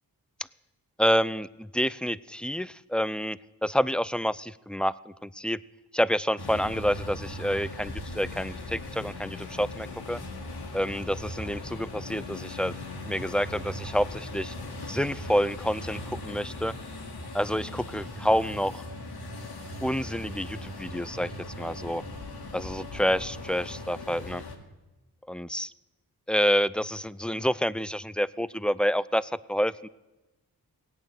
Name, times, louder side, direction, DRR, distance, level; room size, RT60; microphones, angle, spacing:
voice 1, 1.0-4.9 5.2-5.6 5.9-10.2 10.7-12.7 13.1-14.5 14.9-16.7 17.3-18.8 19.8-21.3 21.6-22.0 22.5-24.4 25.3-25.7 26.3-29.9, equal, 5° left, 18 dB, 0.4 m, -28 dB
sound 1, 6.4-24.6, left 1 dB, 75° left, 2.0 m, -39 dB
17.0 x 8.9 x 7.8 m, 1.1 s
cardioid pair, 50°, 39 cm